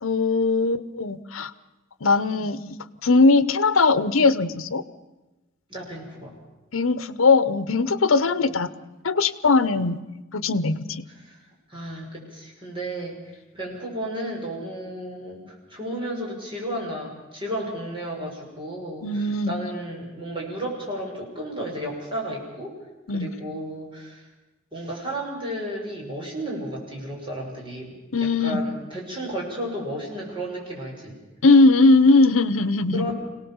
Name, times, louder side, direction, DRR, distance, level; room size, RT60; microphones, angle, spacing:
voice 1, 0.0-1.5 2.0-2.6 3.0-4.8 6.7-8.7 9.0-10.0 10.3-11.1 19.0-19.6 23.1-23.3 28.1-28.6 31.4-33.1, left 3 dB, 75° left, 15 dB, 0.9 m, -19 dB
voice 2, 5.7-6.4 8.2-8.6 11.1-11.4 11.7-22.7 23.1-24.3 24.7-27.9 28.2-31.2 32.9-33.1, right 1 dB, 25° right, -2 dB, 6.0 m, -33 dB
26.0 x 18.0 x 7.2 m, 1.1 s
head